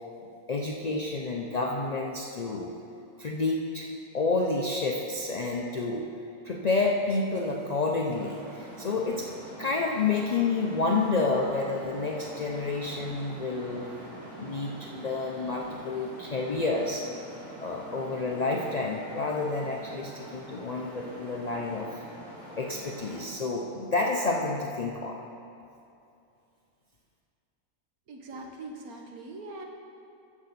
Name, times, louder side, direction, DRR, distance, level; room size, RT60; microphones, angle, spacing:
voice 1, 0.5-2.7 3.2-3.9 4.1-6.1 6.4-9.3 9.6-13.9 14.4-17.0 17.6-21.9 22.6-25.2, left 3 dB, 75° left, -1 dB, 0.3 m, -29 dB
Traffic noise roadway noise, 8.1-23.2, right 1 dB, 90° right, 3.0 m, -45 dB
voice 2, 28.1-29.7, right 2 dB, 75° right, 2 dB, 1.5 m, -42 dB
14.5 x 6.1 x 4.1 m, 2.6 s
omnidirectional pair, 1.6 m